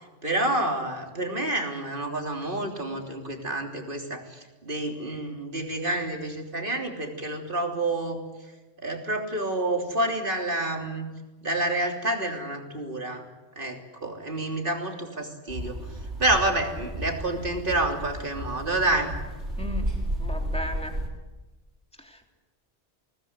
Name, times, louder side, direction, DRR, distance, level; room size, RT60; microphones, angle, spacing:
voice 1, 0.2-8.2 8.8-11.1 11.4-13.3 13.6-15.8 16.2-19.1, right 2 dB, 50° right, 3 dB, 3.5 m, -28 dB
sound 1, 15.5-21.1, right 1 dB, 90° right, 5.8 m, -33 dB
voice 2, 19.6-19.9 20.2-20.9 22.0-22.3, left 1 dB, 5° left, 2 dB, 3.3 m, -36 dB
21.0 x 19.5 x 9.7 m, 1.1 s
omnidirectional pair, 1.1 m